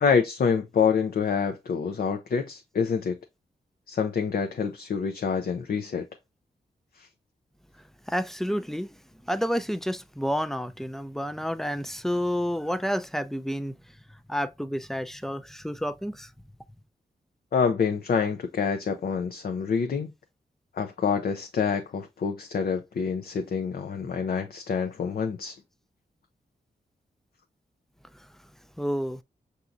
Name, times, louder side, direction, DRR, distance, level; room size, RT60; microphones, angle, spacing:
voice 1, 0.0-3.2 3.9-6.1 7.0-7.1 17.5-20.1 20.7-25.6, left 6 dB, 60° left, 0.6 m, -27 dB
voice 2, 8.1-8.9 9.3-13.8 14.3-16.3 28.8-29.2, equal, ahead, 0.4 m, -29 dB
5.8 x 2.7 x 2.5 m
cardioid pair, 45°, 17 cm